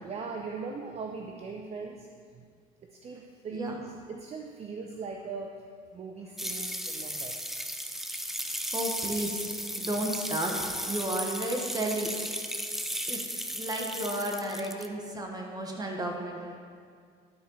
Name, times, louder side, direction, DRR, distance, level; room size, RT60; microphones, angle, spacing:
voice 1, 0.0-2.1 3.0-5.5 5.9-7.4, right 4 dB, 40° right, 2 dB, 0.7 m, -39 dB
sound 1, 6.4-14.9, equal, ahead, 0.5 m, -35 dB
voice 2, 8.7-9.5 9.8-10.5 10.9-12.1 13.1-13.2 13.6-16.5, right 1 dB, 20° right, 0 dB, 1.5 m, -33 dB
12.0 x 4.4 x 5.7 m, 2.1 s
cardioid pair, 110°, 17 cm